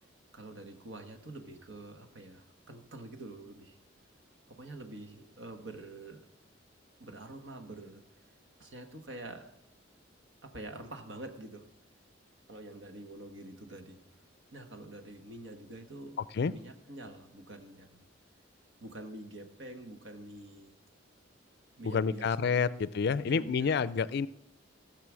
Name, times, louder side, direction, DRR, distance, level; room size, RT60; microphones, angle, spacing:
voice 1, 0.3-3.8 4.5-6.2 7.0-8.0 8.6-9.5 10.4-11.7 12.5-14.0 14.5-16.2 16.5-18.0 18.8-20.8 21.8-22.8 23.2-23.8, right 2 dB, 70° right, 5 dB, 1.4 m, -46 dB
voice 2, 16.2-16.5 21.8-24.3, left 5 dB, 60° left, 17 dB, 0.4 m, -29 dB
15.5 x 6.6 x 6.3 m, 0.85 s
head